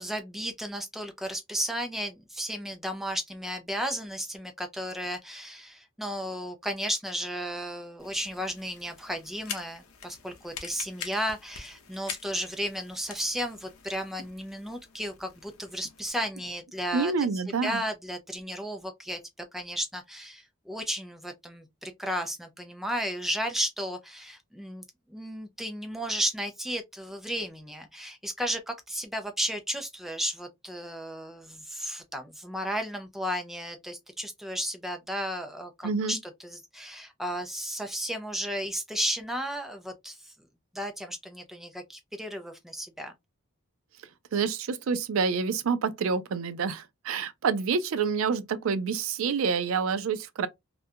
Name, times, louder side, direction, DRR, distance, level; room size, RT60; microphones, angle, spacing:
voice 1, 0.0-17.1 17.6-19.2 19.5-24.8 25.1-36.2 36.4-40.3 40.7-43.1, equal, ahead, 0.3 m, -34 dB
sound 1, 8.0-16.1, left 7 dB, 90° left, 0.6 m, -45 dB
voice 2, 16.9-17.8 35.8-36.2 44.3-50.5, right 5 dB, 80° right, 0.4 m, -28 dB
2.4 x 2.2 x 2.6 m
head